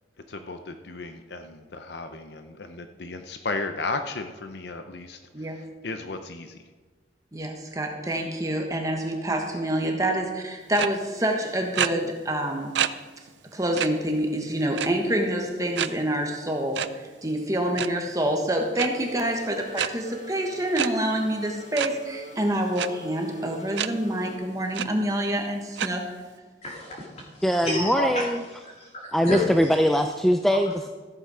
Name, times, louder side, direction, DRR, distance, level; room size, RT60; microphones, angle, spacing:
voice 1, 0.3-6.6, left 3 dB, 60° left, 7 dB, 0.6 m, -35 dB
voice 2, 7.3-12.8 13.5-26.0, right 1 dB, 20° right, 2 dB, 1.2 m, -27 dB
sound 1, 10.7-10.9 11.7-11.9 12.7-12.9 13.3-13.4 13.8-13.9 14.7-15.1 15.8-15.9 16.7-16.9 17.6-17.9 18.8-18.9 19.7-19.9 20.7-20.9 21.8-21.9 22.8-22.9 23.8-23.9 24.3-24.4 24.7-24.9 25.8-25.9, right 9 dB, 70° right, 0.4 m, -26 dB
sound 2, 18.8-24.3, right 1 dB, 80° left, 1.9 m, -43 dB
voice 3, 26.6-28.2 28.8-29.4, left 1 dB, 35° left, -2 dB, 2.5 m, -30 dB
voice 4, 27.4-28.4 29.1-30.9, equal, ahead, 5 dB, 0.3 m, -22 dB
14.5 x 8.1 x 4.9 m, 1.4 s
head